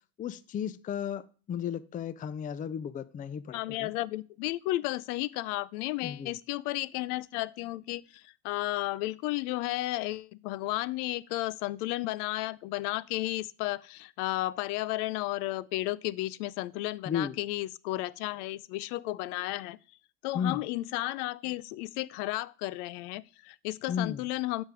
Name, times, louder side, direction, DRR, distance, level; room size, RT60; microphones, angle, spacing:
voice 1, 0.2-3.9 6.0-6.3 17.1-17.3 20.3-20.6 23.9-24.2, left 8 dB, 20° left, 0.3 m, -34 dB
voice 2, 3.5-19.8 20.2-24.6, left 17 dB, 90° left, 0.6 m, -33 dB
8.9 x 5.3 x 4.9 m
supercardioid pair, 115°, 44 cm